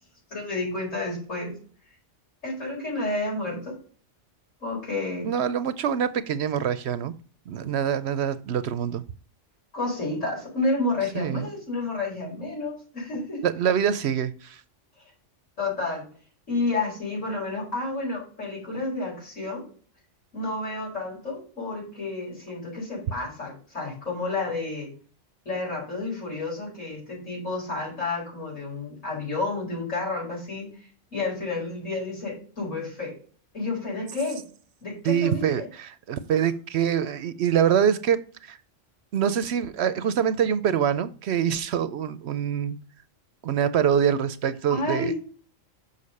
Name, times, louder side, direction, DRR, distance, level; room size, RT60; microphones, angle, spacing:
voice 1, 0.3-1.5 2.4-3.8 4.6-5.3 9.7-13.4 15.6-16.1 16.5-19.6 20.3-24.9 25.5-33.1 33.5-34.4 34.8-35.7 44.7-45.1, left 2 dB, 80° left, 5.2 m, -30 dB
voice 2, 5.2-7.1 7.5-9.0 11.1-11.5 13.4-14.6 35.0-38.6 39.1-42.8 43.4-45.1, right 8 dB, 65° right, 0.8 m, -25 dB
6.7 x 5.4 x 5.3 m
omnidirectional pair, 1.3 m